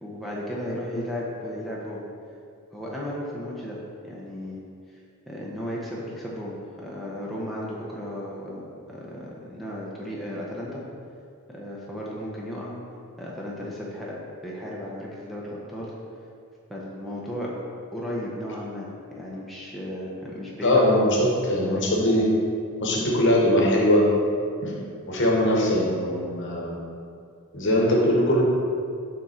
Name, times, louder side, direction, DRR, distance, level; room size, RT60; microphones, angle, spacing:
voice 1, 0.0-2.0 2.7-3.8 4.0-4.6 5.3-8.6 8.9-10.8 11.5-12.7 13.2-15.9 16.7-17.5 17.9-18.9 19.2-21.0 21.7-21.9, equal, ahead, -6 dB, 0.7 m, -34 dB
voice 2, 20.6-22.3 22.8-24.1 24.6-24.8 25.1-26.8 27.5-28.4, left 1 dB, 55° left, -2 dB, 1.1 m, -21 dB
6.9 x 3.7 x 4.3 m, 2.4 s
head